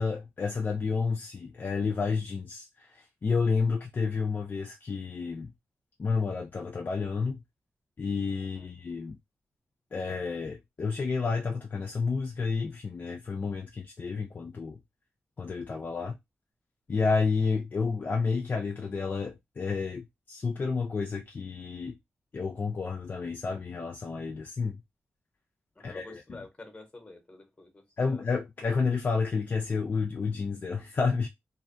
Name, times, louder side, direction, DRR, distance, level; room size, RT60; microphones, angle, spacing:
voice 1, 0.0-5.5 6.0-7.4 8.0-9.2 9.9-14.8 15.4-16.2 16.9-22.0 22.3-24.8 25.8-26.4 28.0-31.3, left 4 dB, 45° left, 0.4 m, -30 dB
voice 2, 25.8-28.3, left 2 dB, 25° left, 0.9 m, -49 dB
2.5 x 2.2 x 2.6 m
wide cardioid pair, 100°, 5 cm